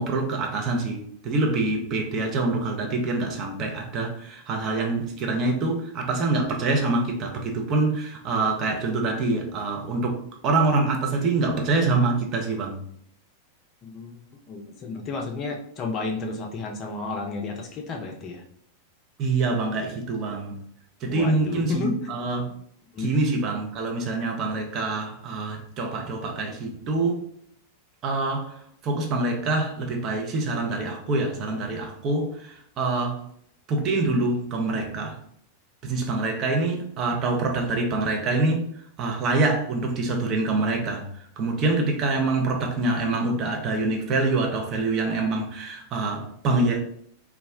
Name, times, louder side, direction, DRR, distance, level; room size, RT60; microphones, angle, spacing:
voice 1, 0.0-12.8 19.2-20.6 21.0-22.5 23.0-27.2 28.0-33.2 33.7-35.2 35.8-46.8, right 3 dB, 35° right, 1 dB, 0.6 m, -25 dB
voice 2, 13.8-14.2 14.5-18.4 21.0-22.0 22.9-23.1, left 3 dB, 30° left, 1 dB, 0.5 m, -32 dB
2.3 x 2.1 x 3.5 m, 0.65 s
figure-of-eight pair, 90°, 0 cm